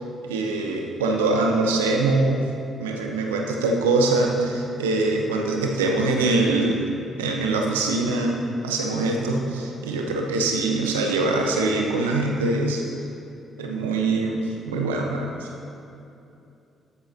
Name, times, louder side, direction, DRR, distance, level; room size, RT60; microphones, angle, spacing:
voice 1, 0.3-2.4 2.8-6.9 7.2-8.4 8.6-12.8 13.6-15.5, right 3 dB, 90° right, 1 dB, 1.1 m, -23 dB
13.0 x 11.0 x 2.9 m, 2.7 s
hypercardioid pair, 45°, 0 cm